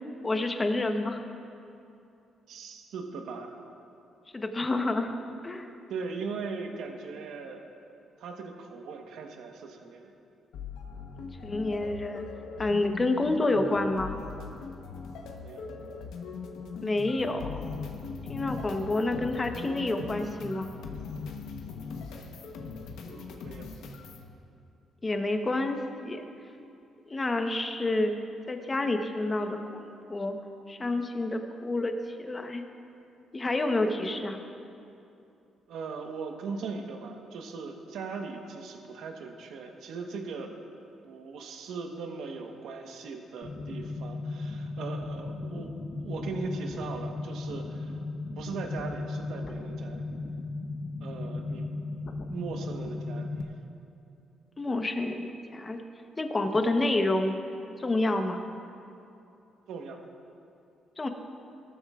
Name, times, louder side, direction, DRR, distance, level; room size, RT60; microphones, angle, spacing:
voice 1, 0.2-1.2 4.3-5.1 5.4-5.7 11.4-12.2 12.6-14.2 16.8-17.6 18.3-20.7 25.0-26.2 27.1-28.1 28.5-29.8 30.1-30.4 30.7-31.9 32.2-32.6 33.3-34.4 54.6-55.8 56.2-57.4 57.8-58.4 61.0-61.1, left 2 dB, 25° left, 5 dB, 1.0 m, -28 dB
voice 2, 2.5-3.6 5.9-7.6 8.2-10.1 15.4-15.6 23.0-23.6 35.7-40.5 41.0-48.0 48.4-50.1 51.0-51.7 52.3-53.3 59.7-60.0, right 4 dB, 80° right, 3 dB, 1.2 m, -39 dB
sound 1, 10.5-24.2, left 4 dB, 85° left, 1.1 m, -40 dB
sound 2, 43.4-53.4, left 3 dB, 50° left, 0.9 m, -36 dB
18.0 x 13.5 x 2.5 m, 2.7 s
cardioid pair, 90°, 0 cm